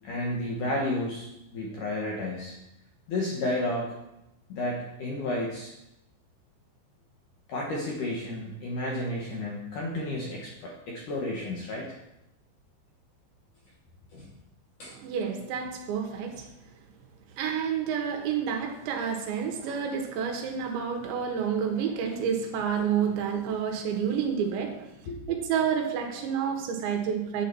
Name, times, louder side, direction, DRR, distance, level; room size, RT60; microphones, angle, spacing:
voice 1, 0.0-2.5 3.1-3.9 4.5-5.7 7.5-11.9 14.1-14.3 14.8-14.9 25.1-25.2, left 1 dB, 65° left, -3 dB, 2.0 m, -32 dB
voice 2, 14.9-16.5 17.4-24.8 25.3-27.5, right 7 dB, 80° right, 3 dB, 3.4 m, -29 dB
10.0 x 8.6 x 4.5 m, 0.90 s
omnidirectional pair, 5.3 m